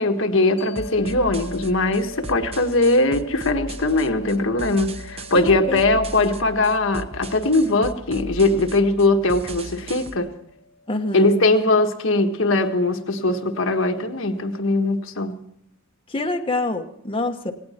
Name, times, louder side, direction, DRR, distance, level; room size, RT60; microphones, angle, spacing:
voice 1, 0.0-10.3 11.1-15.3, left 2 dB, 70° left, 1.5 m, -20 dB
sound 1, 0.6-13.1, left 2 dB, 50° left, 3.2 m, -44 dB
sound 2, 0.8-10.2, right 1 dB, 30° right, 0.9 m, -37 dB
voice 2, 5.3-5.8 10.9-11.4 16.1-17.5, left 2 dB, 25° left, 1.3 m, -26 dB
18.5 x 17.5 x 4.4 m
head